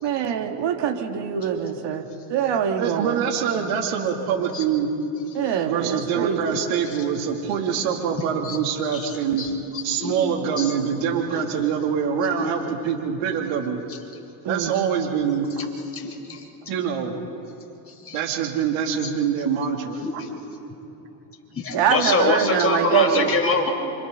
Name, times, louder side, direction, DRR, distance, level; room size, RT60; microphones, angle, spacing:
voice 1, 0.0-3.2 5.3-6.6 14.4-14.9 21.7-23.4, right 8 dB, 55° right, 4 dB, 2.5 m, -24 dB
voice 2, 2.8-4.9 5.6-9.4 9.8-13.9 14.5-15.7 16.7-17.2 18.1-20.0, right 7 dB, 75° right, 2 dB, 3.3 m, -25 dB
voice 3, 15.9-16.4 17.9-18.2 20.0-20.4 21.5-23.7, left 3 dB, 25° left, 0 dB, 5.1 m, -25 dB
28.0 x 26.5 x 4.1 m, 2.9 s
supercardioid pair, 85°, 50 cm